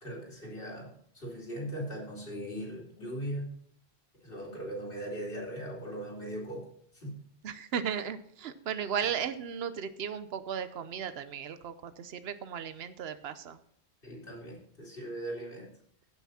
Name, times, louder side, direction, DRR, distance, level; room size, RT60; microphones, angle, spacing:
voice 1, 0.0-3.5 4.2-6.7 6.9-7.2 9.0-9.1 14.0-15.7, right 1 dB, 55° left, -2 dB, 3.2 m, -39 dB
voice 2, 7.4-13.6, right 7 dB, 70° right, 12 dB, 1.0 m, -35 dB
16.0 x 5.9 x 4.2 m, 0.65 s
omnidirectional pair, 1.1 m